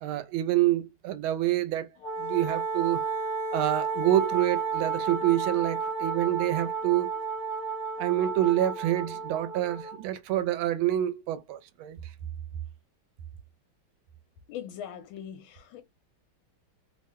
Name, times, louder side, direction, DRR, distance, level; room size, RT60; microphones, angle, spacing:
voice 1, 0.0-1.9 2.2-3.0 3.5-7.1 8.0-12.0, right 13 dB, 80° right, 1.4 m, -27 dB
Wind instrument woodwind instrument, 2.0-10.0, right 5 dB, 65° left, 1.0 m, -32 dB
voice 2, 14.5-15.8, left 9 dB, 80° left, 1.4 m, -40 dB
3.4 x 2.1 x 3.5 m
omnidirectional pair, 2.2 m